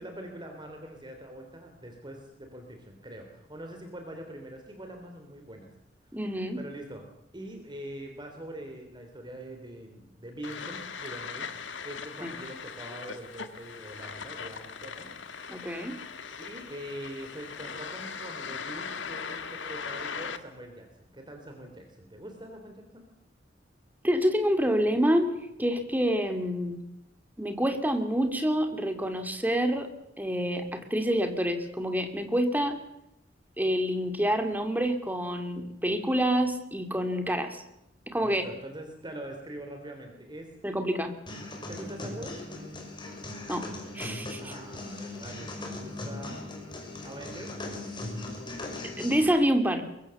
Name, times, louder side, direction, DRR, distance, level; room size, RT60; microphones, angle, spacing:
voice 1, 0.0-5.7 6.1-6.2 6.5-15.1 16.4-23.0 38.2-40.5 41.7-42.4 44.4-46.4 46.8-47.6, right 1 dB, 25° right, 3 dB, 3.3 m, -43 dB
voice 2, 6.1-6.6 12.2-12.3 15.5-16.0 24.0-26.8 27.4-29.9 30.2-32.8 33.6-37.6 38.1-38.4 40.6-41.1 43.5-43.7 43.9-44.5 49.0-49.9, equal, 10° right, 6 dB, 2.7 m, -27 dB
sound 1, 10.4-20.4, left 5 dB, 70° left, 1.7 m, -39 dB
sound 2, 41.3-49.3, left 2 dB, 25° left, 5.6 m, -39 dB
23.0 x 22.5 x 7.1 m, 0.82 s
head